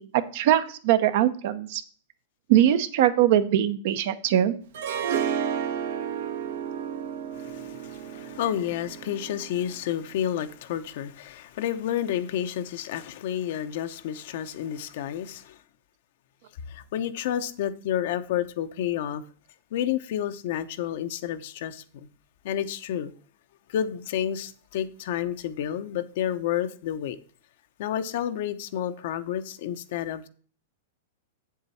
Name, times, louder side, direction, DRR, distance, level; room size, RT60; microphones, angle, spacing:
voice 1, 0.0-1.8 2.5-4.5, right 11 dB, 60° right, 0.9 m, -22 dB
Harp, 4.7-9.8, right 8 dB, 75° right, 1.2 m, -32 dB
voice 2, 7.3-15.6 16.7-19.2 19.7-22.1 22.4-23.1 23.7-27.2 27.8-30.3, left 10 dB, 60° left, 0.8 m, -30 dB
7.9 x 7.3 x 4.3 m
hypercardioid pair, 140°, 0 cm